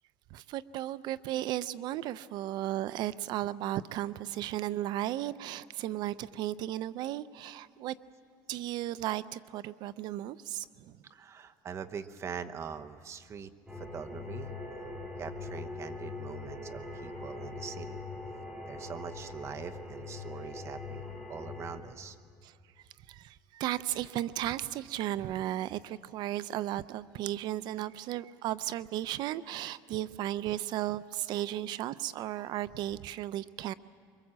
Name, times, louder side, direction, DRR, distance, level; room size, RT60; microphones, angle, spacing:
voice 1, 0.3-7.9 8.5-10.9 22.4-22.5 23.1-33.7, right 13 dB, 65° right, 17 dB, 0.5 m, -35 dB
voice 2, 11.1-13.5 13.8-14.5 15.2-18.0 18.7-22.2 32.3-32.5, right 7 dB, 35° right, 11 dB, 0.9 m, -43 dB
sound 1, 13.7-21.8, left 3 dB, 10° right, 3.7 m, -42 dB
24.5 x 23.0 x 7.5 m, 2.2 s
cardioid pair, 135°, 8 cm